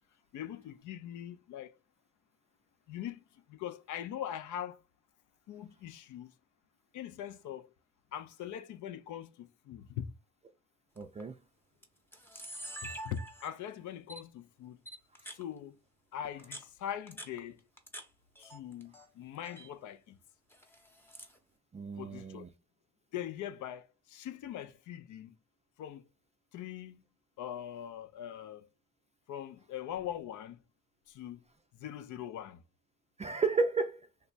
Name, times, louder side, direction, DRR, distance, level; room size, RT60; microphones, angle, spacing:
voice 1, 0.3-1.8 2.9-4.8 5.5-6.3 6.9-7.7 8.1-10.1 12.8-14.8 15.3-15.8 16.1-17.6 18.4-20.2 22.0-22.4 23.1-25.3 25.8-26.0 26.5-27.0 27.4-28.7 29.3-30.6 31.1-31.4 31.8-32.6, left 10 dB, 75° left, 0.5 m, -42 dB
Camera, 11.0-11.2 11.8-11.9 12.1-13.7 14.1-14.2 14.9-15.4 16.2-18.1 18.4-19.1 19.3-19.7 20.5-21.4, right 1 dB, 5° left, 0.8 m, -46 dB
voice 2, 11.0-11.4 15.2-15.3 21.7-22.5 33.2-34.1, right 4 dB, 25° right, 0.3 m, -32 dB
3.3 x 2.2 x 3.9 m
cardioid pair, 90°, 30 cm